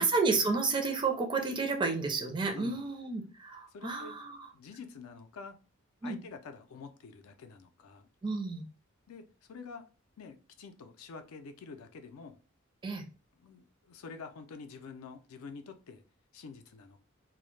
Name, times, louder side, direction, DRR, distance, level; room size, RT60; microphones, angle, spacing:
voice 1, 0.0-4.5 6.0-6.2 8.2-8.6 12.8-13.0, right 4 dB, 20° right, 4 dB, 0.4 m, -31 dB
voice 2, 2.4-2.8 3.7-4.2 4.5-5.6 6.0-8.1 9.1-9.8 10.2-12.4 13.4-16.0 16.3-17.0, left 4 dB, 85° left, 8 dB, 0.4 m, -47 dB
2.1 x 2.0 x 3.0 m, 0.35 s
head